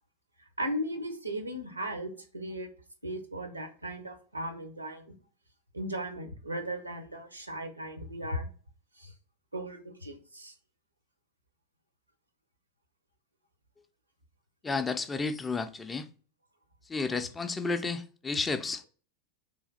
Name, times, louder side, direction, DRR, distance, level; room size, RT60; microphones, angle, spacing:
voice 1, 0.6-2.7 3.0-5.1 5.7-8.5 9.0-9.1 9.5-10.5, equal, 85° right, 0.7 m, -37 dB
voice 2, 14.6-16.1 16.9-18.9, left 4 dB, 15° left, 0.3 m, -32 dB
3.2 x 2.4 x 3.7 m
figure-of-eight pair, 90°, 0 cm